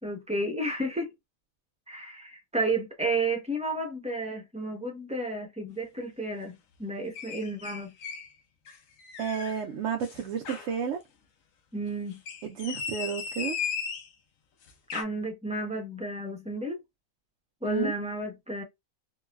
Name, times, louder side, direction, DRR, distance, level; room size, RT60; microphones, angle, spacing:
voice 1, 0.0-1.1 1.9-7.9 11.7-12.2 14.9-16.8 17.6-18.6, right 2 dB, 5° right, 0.6 m, -32 dB
sound 1, 7.1-8.3 8.7-9.6 10.0-10.7 12.1-14.1 14.7-15.0, left 7 dB, 75° left, 1.1 m, -36 dB
voice 2, 9.2-11.0 12.5-13.6 17.6-17.9, right 7 dB, 65° right, 0.9 m, -31 dB
3.8 x 2.2 x 2.3 m
omnidirectional pair, 1.4 m